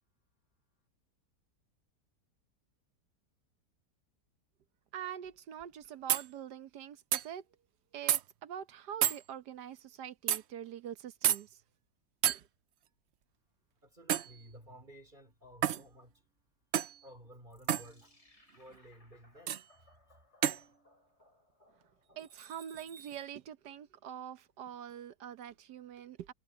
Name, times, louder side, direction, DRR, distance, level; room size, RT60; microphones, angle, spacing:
voice 1, 4.9-7.4 7.9-11.6 12.2-12.5 22.1-26.3, right 9 dB, 90° right, 1.5 m, -45 dB
sound 1, 5.6-5.7 6.1-6.3 7.1-7.3 8.1-8.2 9.0-9.2 10.3-10.4 11.2-11.4 12.2-12.4 14.1-14.3 15.6-15.8 16.7-17.0 17.7-17.9 19.5-19.6 20.4-20.6, right 10 dB, 65° right, 0.7 m, -29 dB
voice 2, 13.8-16.2 17.0-18.2 18.5-20.2, equal, 30° right, 4.7 m, -55 dB
sound 2, 17.5-22.8, left 1 dB, 40° left, 7.7 m, -67 dB
omnidirectional pair, 1.7 m